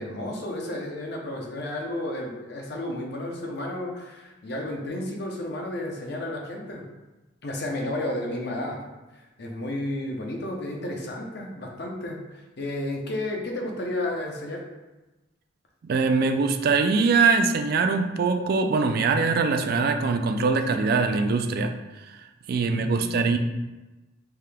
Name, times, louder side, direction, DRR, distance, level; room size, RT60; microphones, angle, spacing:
voice 1, 0.0-6.8 7.4-8.8 9.1-14.6 22.6-23.3, left 1 dB, 60° left, 0 dB, 0.7 m, -32 dB
voice 2, 15.8-21.7 22.5-23.4, right 4 dB, 55° right, 6 dB, 0.3 m, -22 dB
3.4 x 2.8 x 3.4 m, 1.1 s
head